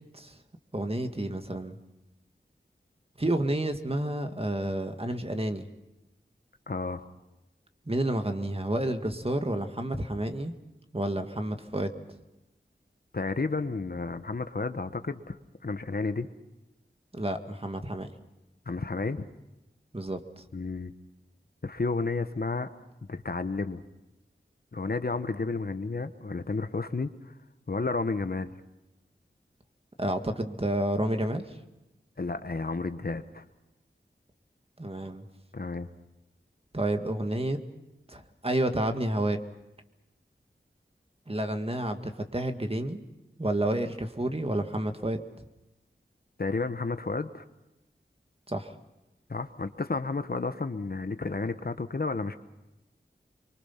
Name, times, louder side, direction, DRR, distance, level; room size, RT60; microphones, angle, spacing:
voice 1, 0.7-1.8 3.2-5.7 7.9-10.5 10.9-11.9 17.1-18.1 19.9-20.4 30.0-31.5 34.8-35.3 36.7-37.6 38.1-39.4 41.3-43.0 43.4-45.2 48.5-48.7, right 1 dB, 30° right, 6 dB, 1.9 m, -30 dB
voice 2, 6.7-7.1 13.1-15.4 15.6-16.3 18.7-19.2 20.5-20.9 21.6-22.7 23.1-23.8 24.7-27.1 27.7-28.5 32.2-33.4 35.5-35.9 46.4-47.5 49.3-52.4, left 3 dB, 50° left, 10 dB, 1.1 m, -31 dB
24.0 x 24.0 x 5.8 m, 0.99 s
wide cardioid pair, 40°, 19 cm